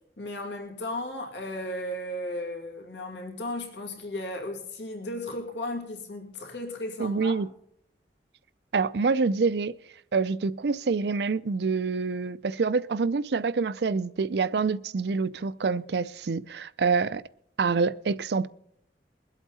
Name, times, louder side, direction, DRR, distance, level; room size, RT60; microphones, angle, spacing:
voice 1, 0.2-7.4, left 1 dB, 85° left, 2.5 m, -35 dB
voice 2, 7.0-7.5 8.7-9.7 10.1-17.2 17.6-18.5, right 4 dB, 70° right, 0.5 m, -26 dB
22.0 x 8.3 x 4.2 m
head